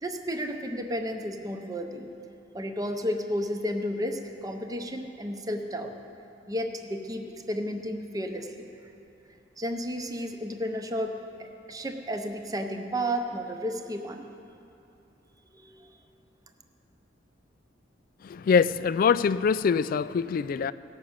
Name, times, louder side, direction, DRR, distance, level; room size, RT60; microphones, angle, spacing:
voice 1, 0.0-2.1 2.5-5.9 6.5-8.7 9.6-14.3 15.5-15.9, equal, 20° right, 0.7 m, -32 dB
voice 2, 18.2-20.7, left 6 dB, 50° left, 0.3 m, -24 dB
18.0 x 6.2 x 7.2 m
head